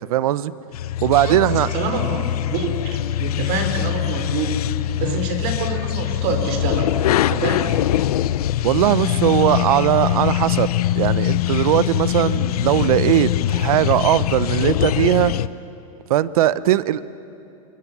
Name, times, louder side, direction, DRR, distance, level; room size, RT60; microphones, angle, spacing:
voice 1, 0.1-0.5 1.0-1.7 5.0-5.2 8.6-15.3 16.1-17.0, right 13 dB, 70° right, 17 dB, 0.8 m, -19 dB
sound 1, 0.7-15.5, left 12 dB, 80° left, 0.8 m, -22 dB
voice 2, 1.7-2.2 2.5-4.5 5.0-7.0 7.3-7.8, right 3 dB, 45° right, 5 dB, 4.2 m, -26 dB
27.0 x 21.5 x 7.5 m, 2.9 s
supercardioid pair, 150°, 19 cm